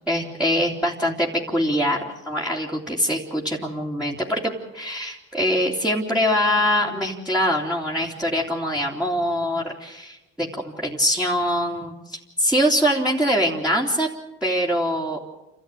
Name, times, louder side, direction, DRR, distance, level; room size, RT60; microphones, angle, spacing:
voice 1, 0.1-14.1 14.4-15.2, equal, 5° right, -5 dB, 3.0 m, -23 dB
29.0 x 13.5 x 9.2 m, 0.96 s
cardioid pair, 90°, 30 cm